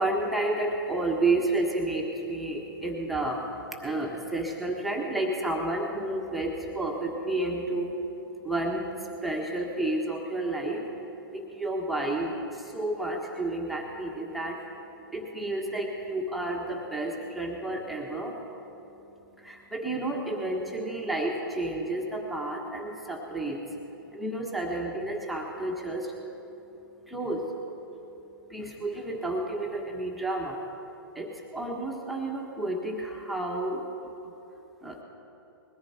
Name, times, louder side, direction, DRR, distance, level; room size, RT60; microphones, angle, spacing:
voice 1, 0.0-30.6 31.1-34.1 34.8-35.0, right 2 dB, ahead, -1 dB, 1.5 m, -31 dB
21.0 x 14.5 x 4.4 m, 3.0 s
hypercardioid pair, 130°, 12 cm